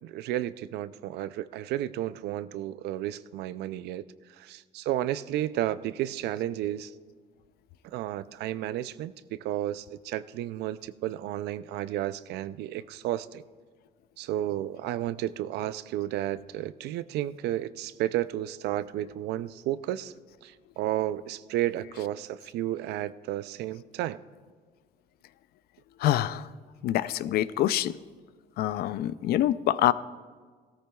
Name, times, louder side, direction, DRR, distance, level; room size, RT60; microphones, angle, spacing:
voice 1, 0.0-4.0 4.4-6.9 7.8-13.4 14.2-20.1 20.4-24.2, right 13 dB, 80° right, 15 dB, 0.4 m, -32 dB
voice 2, 26.0-26.5 26.8-28.0 28.6-29.9, left 13 dB, 65° left, 16 dB, 0.4 m, -26 dB
16.5 x 14.0 x 2.3 m, 1.5 s
cardioid pair, 110°, 17 cm